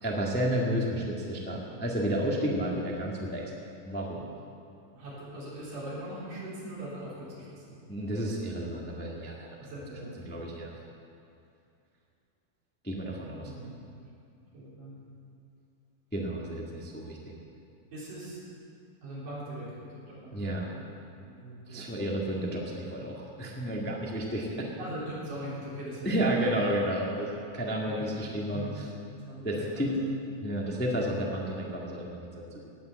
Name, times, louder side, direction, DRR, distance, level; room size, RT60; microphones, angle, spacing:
voice 1, 0.0-3.4 3.8-4.2 7.9-9.5 10.2-10.7 12.8-13.5 16.1-17.2 20.3-20.7 21.7-24.7 26.0-28.6 29.4-29.9 30.4-32.7, right 1 dB, 10° left, -3 dB, 0.4 m, -31 dB
voice 2, 4.9-7.8 9.6-10.5 13.4-13.8 14.4-15.0 17.9-18.4 19.0-20.9 21.2-22.0 24.8-26.6 27.2-27.3 27.9-28.8 29.2-29.9, right 1 dB, 85° right, -8 dB, 5.6 m, -41 dB
18.0 x 6.5 x 8.0 m, 2.5 s
omnidirectional pair, 3.7 m